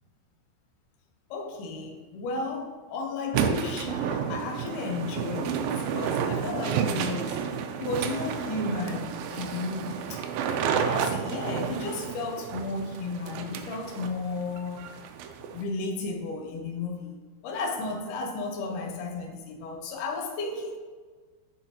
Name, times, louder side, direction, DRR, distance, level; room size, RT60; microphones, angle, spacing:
voice 1, 1.3-7.5 7.8-10.2 10.8-14.9 15.5-20.8, left 3 dB, 80° left, 1 dB, 1.9 m, -34 dB
sound 1, 3.3-15.6, right 7 dB, 90° right, 2.0 m, -31 dB
10.0 x 4.9 x 2.8 m, 1.4 s
omnidirectional pair, 4.7 m